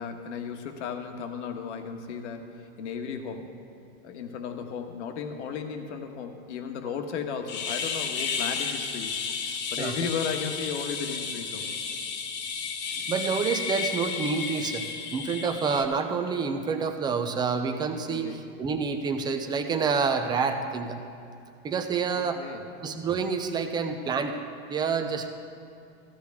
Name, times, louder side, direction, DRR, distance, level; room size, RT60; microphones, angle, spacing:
voice 1, 0.0-3.5 4.0-11.8 18.1-18.4 22.1-22.6, left 6 dB, 80° left, 6 dB, 1.4 m, -35 dB
sound 1, 7.5-15.8, left 6 dB, 30° left, 0.9 m, -32 dB
voice 2, 13.1-21.0 21.6-22.4 22.8-24.4 24.7-25.3, right 5 dB, 15° right, 6 dB, 0.3 m, -28 dB
15.0 x 14.5 x 3.5 m, 2.5 s
supercardioid pair, 150°, 34 cm